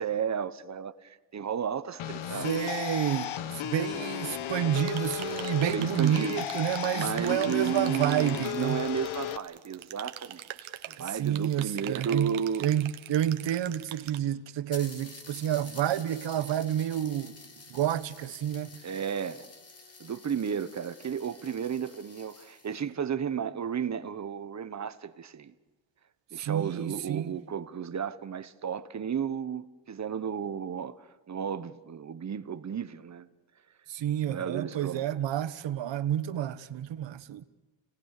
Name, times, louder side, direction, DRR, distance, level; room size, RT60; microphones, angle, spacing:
voice 1, 0.0-2.5 5.6-6.4 6.9-12.7 18.8-19.5 20.0-25.5 26.3-33.3 34.3-35.1, right 7 dB, 35° right, 1.2 m, -33 dB
sound 1, 2.0-9.4, left 10 dB, 80° left, 1.3 m, -35 dB
voice 2, 2.4-8.8 11.0-12.3 12.6-17.3 17.7-18.8 26.3-27.3 33.9-37.4, right 11 dB, 65° right, 1.3 m, -29 dB
sound 2, 4.8-14.2, right 12 dB, 85° right, 1.6 m, -43 dB
sound 3, 9.7-12.5 13.4-13.5 13.7-13.8 14.1-14.2 14.7-22.9, left 3 dB, 30° left, 2.7 m, -50 dB
30.0 x 19.5 x 6.7 m
cardioid pair, 140°, 47 cm